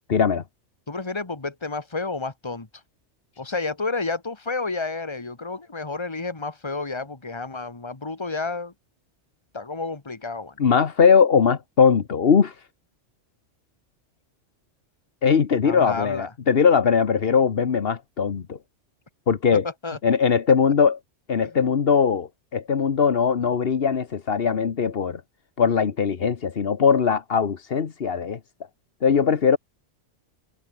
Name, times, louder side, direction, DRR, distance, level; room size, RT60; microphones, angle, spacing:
voice 1, 0.1-0.4 3.5-3.6 10.6-12.6 15.2-18.6 19.3-19.6 20.0-21.0 21.3-25.2 25.6-28.4 29.0-29.6, left 6 dB, 55° left, 1.3 m, -20 dB
voice 2, 0.9-2.7 3.4-8.7 9.5-10.6 15.6-16.3 19.8-20.0, left 3 dB, 20° left, 1.8 m, -30 dB
omnidirectional pair, 1.3 m